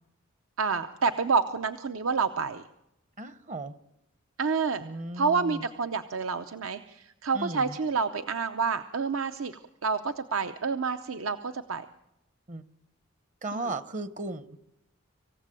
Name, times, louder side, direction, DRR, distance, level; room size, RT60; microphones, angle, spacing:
voice 1, 0.6-2.7 4.4-4.9 5.1-11.9 13.5-13.7, right 5 dB, 80° right, 9 dB, 0.7 m, -29 dB
voice 2, 3.2-3.7 4.8-5.6 7.3-7.8 12.5-12.6 13.4-14.4, right 2 dB, 35° right, 13 dB, 0.8 m, -36 dB
26.0 x 16.0 x 7.6 m, 0.88 s
head